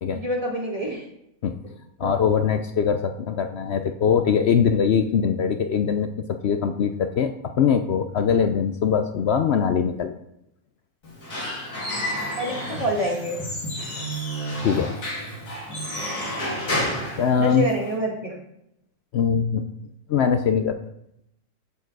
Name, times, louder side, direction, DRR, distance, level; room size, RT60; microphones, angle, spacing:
voice 1, 0.1-1.0 2.0-2.1 12.4-13.4 17.4-18.4, right 1 dB, 25° right, -1 dB, 1.8 m, -27 dB
voice 2, 2.0-6.1 6.4-7.3 7.6-10.1 14.6-14.9 17.2-17.6 19.1-19.6 20.1-20.8, left 7 dB, 65° left, 7 dB, 0.6 m, -22 dB
Squeak / Wood, 11.0-17.9, equal, 85° left, 3.2 m, -30 dB
13.5 x 4.5 x 4.7 m, 0.80 s
omnidirectional pair, 1.6 m